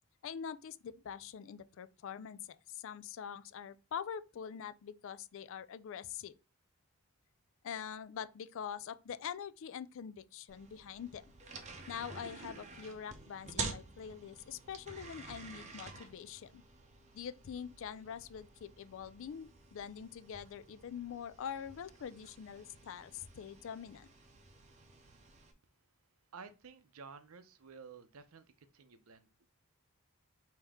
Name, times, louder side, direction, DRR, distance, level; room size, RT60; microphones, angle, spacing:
voice 1, 0.2-6.4 7.6-11.2 11.9-16.6 17.1-24.1, left 8 dB, 60° left, 0.3 m, -44 dB
sound 1, 10.5-25.5, right 4 dB, 30° right, 0.7 m, -49 dB
voice 2, 26.3-29.5, right 5 dB, 70° right, 0.6 m, -53 dB
5.2 x 2.8 x 3.5 m
head